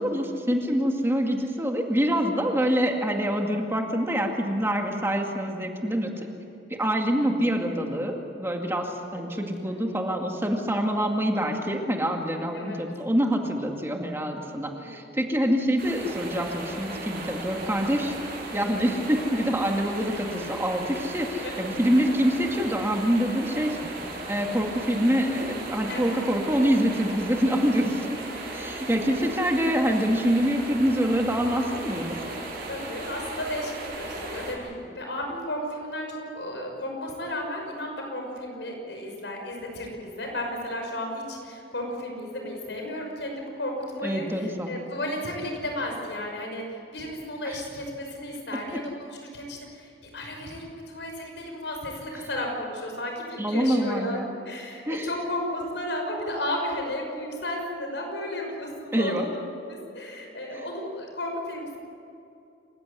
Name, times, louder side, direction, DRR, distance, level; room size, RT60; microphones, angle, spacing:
voice 1, 0.0-6.3 6.8-18.1 18.5-23.8 24.3-28.0 28.5-32.1 44.0-44.7 47.5-47.6 53.4-54.3 54.9-55.1 58.9-59.3 60.5-60.6, equal, 15° right, 2 dB, 2.2 m, -25 dB
voice 2, 9.3-9.8 12.3-12.8 14.6-15.1 21.4-21.5 25.9-26.0 27.8-27.9 28.7-29.3 32.7-59.4 59.7-61.8, left 1 dB, 85° left, 2 dB, 6.0 m, -34 dB
sound 1, 15.8-34.5, right 2 dB, 60° right, 7.7 m, -36 dB
27.5 x 16.0 x 9.7 m, 2.7 s
head